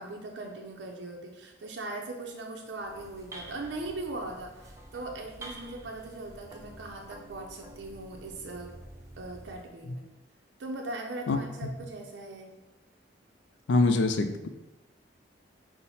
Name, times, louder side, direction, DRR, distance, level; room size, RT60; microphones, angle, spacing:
voice 1, 0.0-8.7 9.2-10.1 10.6-12.5, right 2 dB, 80° right, 1 dB, 0.5 m, -39 dB
sound 1, 2.8-9.7, right 1 dB, 15° right, 0.4 m, -48 dB
voice 2, 11.3-11.7 13.7-14.5, left 3 dB, 75° left, 8 dB, 0.4 m, -25 dB
5.5 x 2.1 x 4.1 m, 1.1 s
head